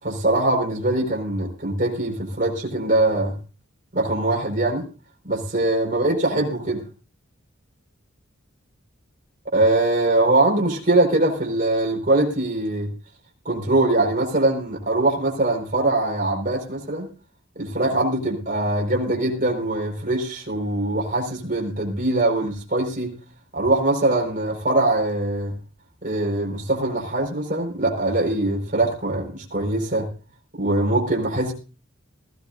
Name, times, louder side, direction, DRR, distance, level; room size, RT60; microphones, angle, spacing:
voice 1, 0.0-3.3 3.9-4.8 5.2-6.8 9.5-12.9 13.4-17.1 17.5-23.1 23.5-25.5 26.0-30.1 30.6-31.5, right 2 dB, 40° right, 0 dB, 5.1 m, -22 dB
20.0 x 16.0 x 2.6 m, 0.35 s
head